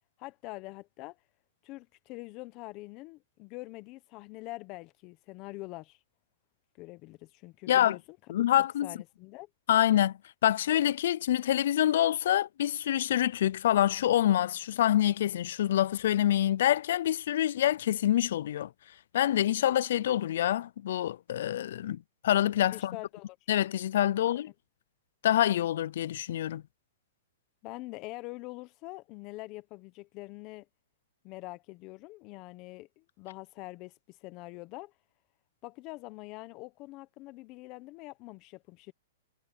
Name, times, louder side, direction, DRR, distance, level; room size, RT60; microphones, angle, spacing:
voice 1, 0.2-1.2 1.6-6.0 6.8-9.5 22.7-23.4 24.3-24.5 27.6-30.7 31.2-34.9 35.6-38.9, left 21 dB, 35° left, 1.0 m, -44 dB
voice 2, 8.3-8.9 9.7-10.1 10.4-18.7 19.1-23.0 23.5-24.5 25.2-26.6, left 12 dB, 65° left, 0.4 m, -26 dB
hypercardioid pair, 145°, 0 cm